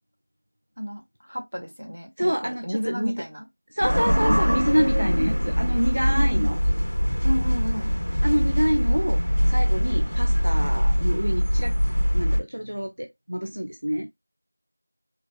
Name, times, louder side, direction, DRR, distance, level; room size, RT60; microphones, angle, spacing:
voice 1, 0.8-3.5 4.8-5.3 6.1-6.6 7.2-7.9, equal, 75° right, 2.1 m, -32 dB
voice 2, 2.2-3.3 3.7-6.6 8.2-11.8 12.1-14.1, equal, 30° right, 0.4 m, -27 dB
sound 1, 3.8-12.4, equal, 50° left, 1.2 m, -22 dB
4.1 x 3.8 x 2.3 m
figure-of-eight pair, 180°, 0 cm